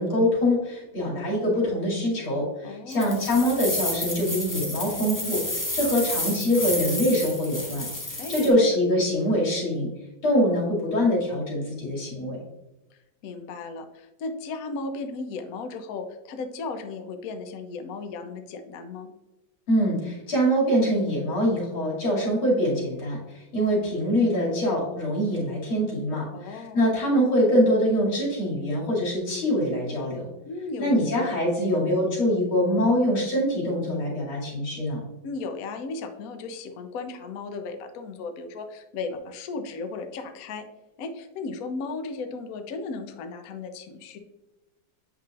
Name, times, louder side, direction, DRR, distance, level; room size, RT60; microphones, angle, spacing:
voice 1, 0.0-5.4 5.7-7.9 8.3-9.9 10.2-12.4 19.7-23.2 23.5-30.3 30.8-35.0, equal, 90° left, -5 dB, 3.3 m, -24 dB
voice 2, 2.6-3.5 8.2-8.6 12.9-19.1 26.3-26.9 30.5-31.3 35.2-40.7 41.0-44.2, left 3 dB, 70° left, 7 dB, 0.8 m, -36 dB
sound 1, 2.9-8.5, left 1 dB, 25° left, 0.4 m, -31 dB
7.6 x 5.6 x 2.4 m, 1.0 s
omnidirectional pair, 2.2 m